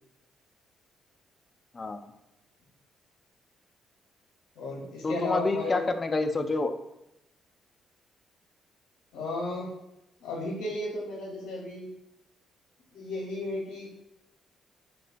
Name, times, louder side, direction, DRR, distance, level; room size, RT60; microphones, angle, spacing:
voice 1, 1.7-2.1 5.0-6.7, left 3 dB, 30° left, 8 dB, 0.3 m, -28 dB
voice 2, 4.6-5.8 9.1-9.7 10.2-11.9 12.9-13.9, left 2 dB, 85° left, -4 dB, 0.7 m, -34 dB
4.5 x 2.2 x 2.5 m, 0.88 s
cardioid pair, 90°, 0 cm